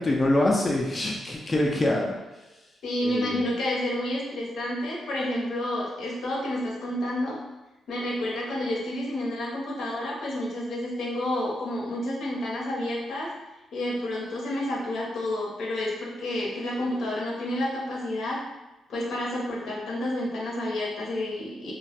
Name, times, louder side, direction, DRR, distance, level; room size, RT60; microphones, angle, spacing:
voice 1, 0.0-2.2 3.0-3.4, left 1 dB, 30° left, -2 dB, 0.4 m, -24 dB
voice 2, 2.8-7.4 7.9-13.3 13.7-18.4 18.9-21.7, left 1 dB, 75° left, -4 dB, 0.6 m, -30 dB
2.2 x 2.0 x 2.8 m, 1.0 s
cardioid pair, 75°, 0 cm